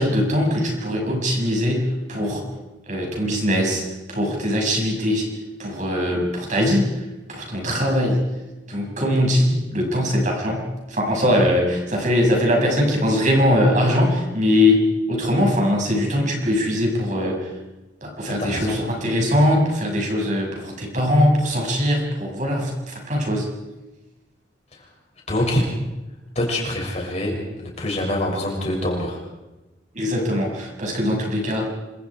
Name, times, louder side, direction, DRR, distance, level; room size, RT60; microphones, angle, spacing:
voice 1, 0.0-2.4 2.9-3.8 4.1-5.3 5.6-6.9 7.3-8.2 8.7-17.5 18.0-23.5 29.9-31.7, left 1 dB, 45° right, 0 dB, 6.8 m, -21 dB
voice 2, 18.3-18.8 25.3-25.6 26.4-29.2, left 1 dB, 40° left, -1 dB, 7.0 m, -25 dB
27.5 x 26.5 x 4.9 m, 1.1 s
head